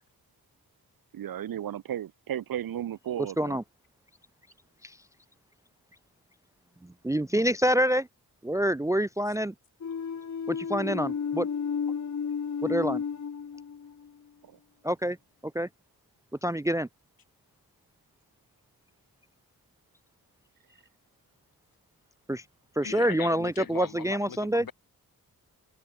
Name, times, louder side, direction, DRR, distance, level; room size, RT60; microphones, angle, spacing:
voice 1, 1.1-3.6 14.4-14.5, right 10 dB, 70° right, 0.7 m, -34 dB
voice 2, 7.0-8.1 8.4-9.5 10.5-11.5 12.6-13.0 14.8-15.2 15.4-15.7 16.4-16.9 22.3-22.4 22.8-24.7, equal, 10° right, 0.5 m, -26 dB
sound 1, 9.8-14.1, left 6 dB, 50° left, 1.6 m, -32 dB
voice 3, 22.8-24.7, left 7 dB, 65° left, 3.3 m, -39 dB
cardioid pair, 90°, 37 cm